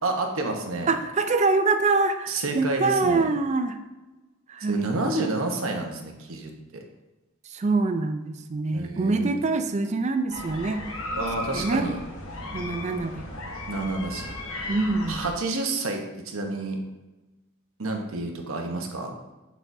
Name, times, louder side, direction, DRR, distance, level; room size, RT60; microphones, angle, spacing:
voice 1, 0.0-0.9 2.3-3.3 4.6-6.8 8.7-9.3 11.2-12.0 13.7-14.3 15.1-16.8 17.8-19.2, right 2 dB, 70° right, 3 dB, 1.0 m, -29 dB
voice 2, 0.9-3.8 4.5-4.9 7.5-10.8 11.5-11.9 12.5-13.2 14.7-15.2, right 3 dB, 35° right, 8 dB, 0.4 m, -25 dB
sound 1, 10.3-15.3, left 1 dB, 70° left, 1.2 m, -35 dB
8.3 x 5.6 x 2.7 m, 1.1 s
head